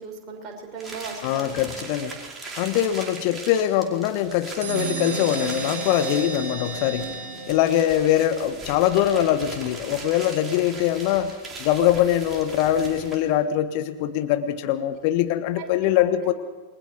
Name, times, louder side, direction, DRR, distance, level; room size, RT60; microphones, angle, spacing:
voice 1, 0.0-1.6 7.0-7.1 15.6-15.7, right 5 dB, 35° right, 2 dB, 5.8 m, -37 dB
sound 1, 0.8-13.4, right 3 dB, 20° right, 5.0 m, -40 dB
voice 2, 1.2-2.1 2.6-7.1 7.5-16.3, left 11 dB, 45° left, 9 dB, 1.3 m, -23 dB
sound 2, 4.6-8.2, right 4 dB, 60° right, 5.9 m, -32 dB
28.5 x 22.0 x 4.6 m, 1.3 s
figure-of-eight pair, 90°, 0 cm